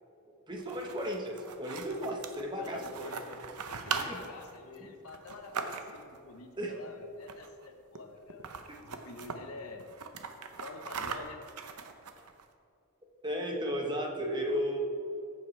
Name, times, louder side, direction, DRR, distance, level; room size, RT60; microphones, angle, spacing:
voice 1, 0.5-3.4 3.8-4.2 6.6-6.7 13.2-14.8, equal, 20° right, 1 dB, 1.1 m, -35 dB
sound 1, 0.5-6.2 7.2-7.7 7.9-8.0 8.3-9.4 9.8-12.4, right 5 dB, 85° right, 0.7 m, -40 dB
voice 2, 2.6-3.3 3.7-9.9 10.6-11.4, left 3 dB, 75° left, 5 dB, 1.0 m, -47 dB
14.0 x 7.5 x 3.3 m, 2.5 s
head